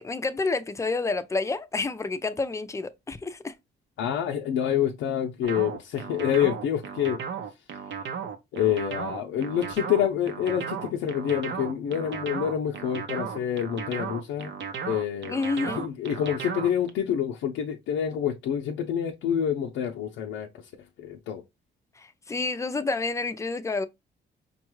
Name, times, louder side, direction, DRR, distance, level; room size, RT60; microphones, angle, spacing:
voice 1, 0.0-3.5 15.3-15.8 22.0-23.9, left 3 dB, 15° left, 0.5 m, -29 dB
voice 2, 4.0-7.2 8.5-14.5 14.9-15.4 15.7-20.5 21.0-21.4, left 9 dB, 85° left, 0.6 m, -27 dB
sound 1, 5.4-16.9, right 7 dB, 65° right, 0.7 m, -35 dB
5.2 x 2.3 x 3.1 m
cardioid pair, 90°, 20 cm